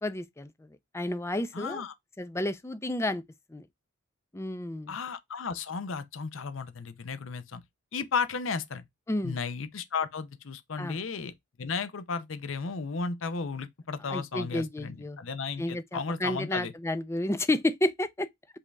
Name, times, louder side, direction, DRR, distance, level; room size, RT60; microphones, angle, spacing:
voice 1, 0.0-1.8 2.2-3.2 3.5-3.7 4.3-5.0 9.1-9.4 10.8-11.0 14.0-15.2 15.6-18.3, left 1 dB, 15° left, 0.4 m, -31 dB
voice 2, 1.5-1.9 4.9-7.6 7.9-8.8 9.2-11.3 11.6-16.7, left 5 dB, 65° left, 0.6 m, -34 dB
5.2 x 2.7 x 3.4 m
head